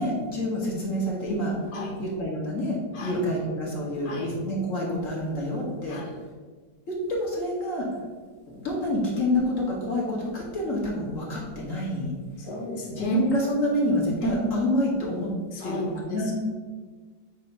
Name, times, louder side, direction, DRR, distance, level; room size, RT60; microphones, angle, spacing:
voice 1, 0.0-1.5 2.0-6.0 6.9-7.9 8.6-12.1 13.0-15.3 15.6-16.3, left 1 dB, 50° left, -3 dB, 1.6 m, -28 dB
voice 2, 12.4-13.2 14.2-14.4 15.5-15.8 16.1-16.2, equal, 65° left, -2 dB, 1.9 m, -32 dB
8.2 x 2.8 x 5.4 m, 1.4 s
omnidirectional pair, 1.9 m